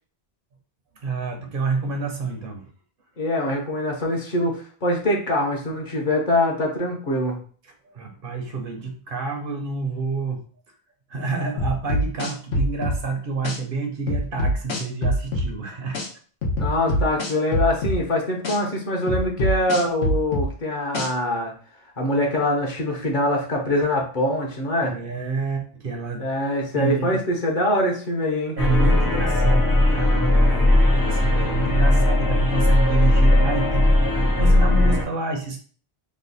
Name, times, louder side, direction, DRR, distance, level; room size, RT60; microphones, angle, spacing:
voice 1, 1.0-2.7 7.8-10.4 11.1-16.0 24.8-26.2 26.7-27.2 28.6-35.6, right 4 dB, 60° right, 3 dB, 0.8 m, -28 dB
voice 2, 3.2-7.4 16.6-21.5 22.0-24.9 26.2-28.6, left 1 dB, 50° left, 0 dB, 0.9 m, -23 dB
sound 1, 11.6-13.0 13.4-13.6 14.1-15.5 15.9-16.1 16.4-18.0 18.4-18.6 19.1-20.5 20.9-21.1, equal, 85° left, 1.1 m, -23 dB
sound 2, 28.6-35.0, left 1 dB, 35° left, 0.4 m, -18 dB
3.2 x 2.2 x 3.9 m, 0.43 s
omnidirectional pair, 1.1 m